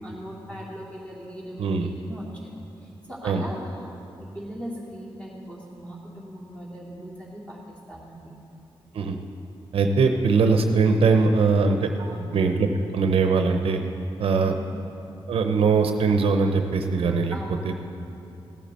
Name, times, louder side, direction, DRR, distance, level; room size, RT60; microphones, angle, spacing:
voice 1, 0.0-3.9 4.2-8.3 12.0-12.3 14.4-14.8 17.3-17.7, equal, 15° left, -5 dB, 2.8 m, -39 dB
voice 2, 9.7-11.9 12.3-12.7 12.9-13.8 14.2-14.5 15.3-17.4 17.6-17.7, right 4 dB, 80° right, 6 dB, 0.7 m, -21 dB
15.5 x 8.6 x 4.3 m, 2.7 s
cardioid pair, 100°, 10 cm